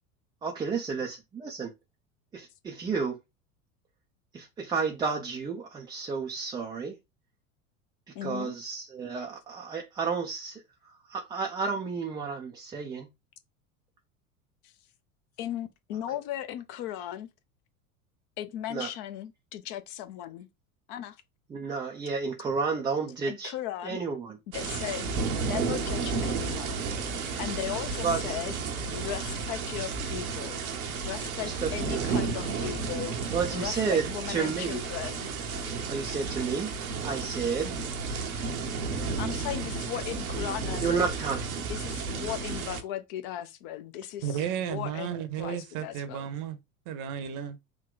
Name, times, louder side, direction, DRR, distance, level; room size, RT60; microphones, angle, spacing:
voice 1, 0.4-1.7 2.3-3.2 4.3-7.0 8.2-13.1 18.7-18.9 21.5-23.5 23.8-24.4 28.0-28.3 31.4-32.7 33.3-34.8 35.9-37.7 40.8-41.4, right 5 dB, 10° right, 0.3 m, -31 dB
voice 2, 8.1-8.5 14.6-14.7 15.4-17.3 18.4-20.5 20.9-21.2 23.3-24.0 24.5-25.1 25.4-26.8 27.4-28.5 28.9-30.6 31.0-35.3 39.2-41.1 41.6-46.3, left 11 dB, 45° left, 0.6 m, -37 dB
sound 1, 24.5-42.8, right 4 dB, 75° right, 0.9 m, -32 dB
voice 3, 44.2-46.6 46.9-47.6, right 9 dB, 45° right, 0.8 m, -33 dB
3.6 x 2.2 x 3.7 m
figure-of-eight pair, 80°, 43 cm